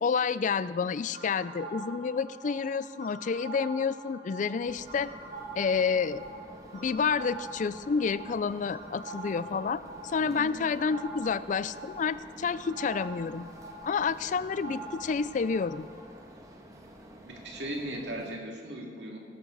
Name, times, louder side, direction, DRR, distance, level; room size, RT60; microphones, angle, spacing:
voice 1, 0.0-5.1 5.6-6.3 6.7-13.5 13.8-15.9, left 5 dB, 45° left, 16 dB, 0.4 m, -29 dB
sound 1, 1.1-15.9, right 3 dB, 45° right, 3.4 m, -45 dB
sound 2, 4.6-18.4, equal, 20° right, 1.3 m, -50 dB
voice 2, 17.3-19.2, right 1 dB, 75° right, 0 dB, 2.4 m, -38 dB
18.0 x 12.0 x 4.0 m, 2.4 s
head